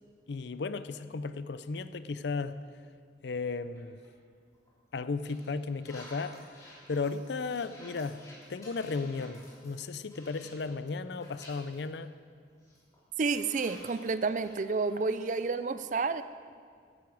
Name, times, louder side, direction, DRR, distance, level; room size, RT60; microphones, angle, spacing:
voice 1, 0.3-2.6 3.2-4.0 4.9-6.4 6.9-8.2 8.5-12.1, left 4 dB, 70° left, 13 dB, 0.5 m, -35 dB
sound 1, 3.7-4.1 4.5-4.7 5.2-10.8 11.1-11.8 12.2-12.3 12.6-15.5, left 1 dB, 20° left, 3.1 m, -53 dB
voice 2, 13.2-16.2, right 4 dB, 45° right, 13 dB, 0.4 m, -30 dB
12.5 x 10.5 x 4.8 m, 2.1 s
head